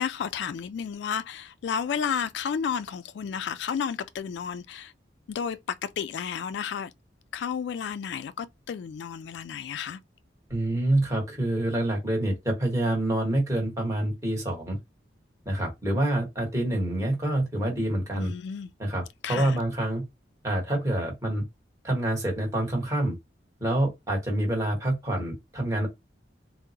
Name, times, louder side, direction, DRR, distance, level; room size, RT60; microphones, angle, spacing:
voice 1, 0.0-4.9 5.3-6.9 7.3-10.0 18.2-18.7 19.2-19.6, left 7 dB, 70° left, 0.3 m, -32 dB
voice 2, 10.5-14.8 15.4-18.3 18.8-20.0 20.4-21.4 21.8-23.2 23.6-25.9, right 1 dB, 15° right, 1.1 m, -27 dB
3.6 x 2.0 x 2.7 m
head